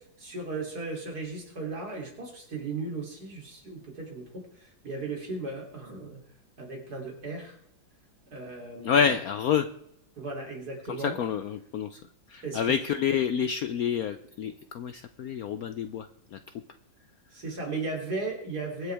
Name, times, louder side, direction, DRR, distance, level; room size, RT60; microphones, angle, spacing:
voice 1, 0.2-6.2 6.6-7.6 8.3-9.1 10.2-11.2 12.4-12.8 17.3-18.9, right 3 dB, 55° right, 0 dB, 3.7 m, -36 dB
voice 2, 8.8-9.7 10.9-12.0 12.3-16.4, left 7 dB, 70° left, 10 dB, 0.9 m, -28 dB
23.5 x 8.1 x 3.5 m, 0.75 s
omnidirectional pair, 2.1 m